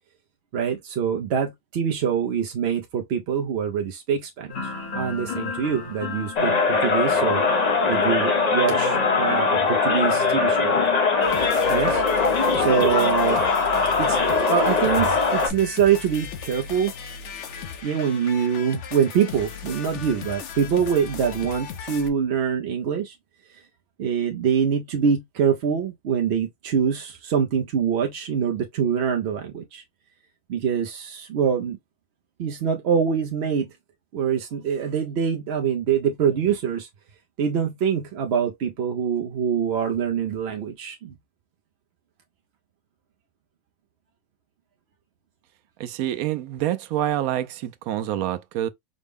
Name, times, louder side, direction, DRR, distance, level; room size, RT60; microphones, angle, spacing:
voice 1, 0.5-7.4 7.9-10.8 11.7-12.0 12.6-13.4 14.0-16.9 17.8-23.2 23.5-23.6 24.0-29.8 30.5-31.8 32.4-33.7 34.1-36.9 37.4-41.1, right 7 dB, 60° right, 0.7 m, -24 dB
sound 1, 4.5-14.2, left 3 dB, 85° left, 1.9 m, -32 dB
sound 2, 6.4-15.5, left 4 dB, 45° left, 0.5 m, -21 dB
sound 3, 11.2-22.1, left 7 dB, 60° left, 1.0 m, -37 dB
voice 2, 45.8-48.7, right 12 dB, 85° right, 1.0 m, -27 dB
5.1 x 2.1 x 3.4 m
omnidirectional pair, 1.5 m